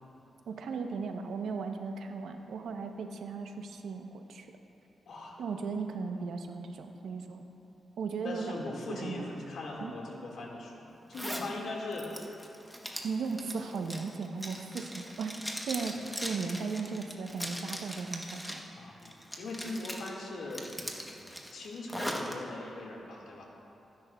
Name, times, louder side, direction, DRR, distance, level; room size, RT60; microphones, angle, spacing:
voice 1, 0.5-4.5 5.4-7.4 8.0-8.6 8.9-9.3 9.8-9.9 13.0-15.4 15.6-18.6, right 4 dB, 85° right, 5 dB, 0.8 m, -36 dB
voice 2, 5.1-5.4 8.2-12.1 13.6-13.7 15.9-16.0 18.8-20.7 21.5-23.5, left 2 dB, 75° left, -2 dB, 1.8 m, -40 dB
Zipper (clothing), 11.1-11.5 11.9-18.7 19.0-20.1 20.5-22.3, equal, ahead, 0.9 m, -40 dB
19.0 x 10.5 x 2.3 m, 2.9 s
wide cardioid pair, 135°, 0 cm